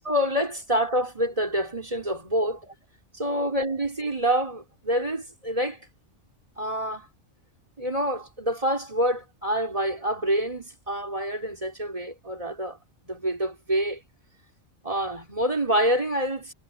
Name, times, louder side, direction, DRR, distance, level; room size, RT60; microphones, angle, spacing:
voice 1, 0.0-2.7 3.1-5.8 6.6-7.1 7.8-12.8 13.0-14.0 14.8-16.5, equal, 30° right, 4.7 m, -27 dB
omnidirectional pair, 1.3 m